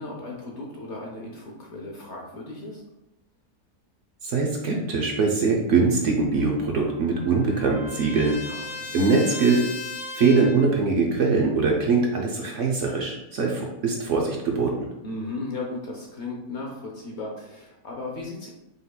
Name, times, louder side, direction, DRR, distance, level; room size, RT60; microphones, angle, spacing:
voice 1, 0.0-2.8 8.5-9.0 15.0-18.5, left 2 dB, 55° left, -1 dB, 0.9 m, -36 dB
voice 2, 4.2-8.4 8.9-9.6 10.1-14.7, right 4 dB, 60° right, 0 dB, 0.9 m, -22 dB
Trumpet, 6.3-10.7, left 3 dB, 85° left, 0.3 m, -37 dB
5.1 x 3.9 x 2.2 m, 0.93 s
omnidirectional pair, 1.6 m